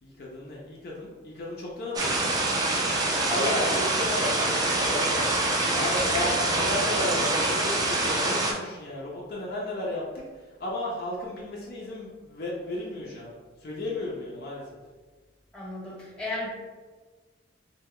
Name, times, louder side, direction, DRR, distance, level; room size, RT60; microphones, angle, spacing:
voice 1, 0.0-2.3 3.3-5.3 5.7-10.2 10.6-14.8, left 1 dB, 50° left, -3 dB, 0.5 m, -33 dB
sound 1, 1.9-8.5, right 2 dB, 20° right, 0.3 m, -25 dB
voice 2, 15.5-16.5, left 2 dB, 5° left, -5 dB, 0.9 m, -35 dB
3.2 x 2.2 x 3.6 m, 1.4 s
head